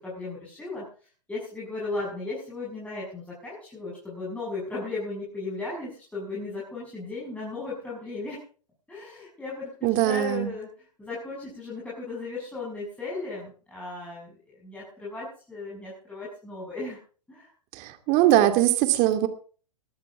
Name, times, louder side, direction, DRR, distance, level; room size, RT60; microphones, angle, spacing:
voice 1, 0.0-8.4 8.9-17.0 17.3-17.5, left 3 dB, 5° left, -6 dB, 6.8 m, -36 dB
voice 2, 9.8-10.5 17.8-19.3, right 13 dB, 35° right, 8 dB, 2.3 m, -21 dB
20.5 x 13.0 x 3.7 m, 0.40 s
hypercardioid pair, 120°, 21 cm